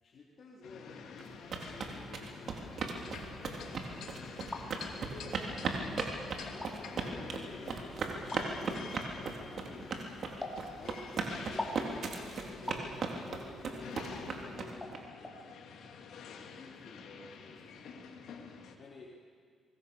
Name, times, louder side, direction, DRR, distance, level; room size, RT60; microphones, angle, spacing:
voice 1, 0.0-2.5 3.3-4.5 5.0-10.2 10.8-15.6 16.2-17.8 18.8-19.2, left 3 dB, 55° left, -2 dB, 3.2 m, -51 dB
sound 1, 0.6-18.8, left 5 dB, 75° left, 2.8 m, -49 dB
sound 2, 1.2-15.0, right 5 dB, 55° right, 3.6 m, -37 dB
sound 3, 4.2-4.7 5.6-5.7 6.5-6.7 8.3-8.4 10.4-10.6 11.6-11.8 12.7-12.9 14.1-14.2 14.8-15.0 15.2-15.4, left 2 dB, 15° left, 4.1 m, -40 dB
25.5 x 21.5 x 7.0 m, 2.2 s
cardioid pair, 90°, 0 cm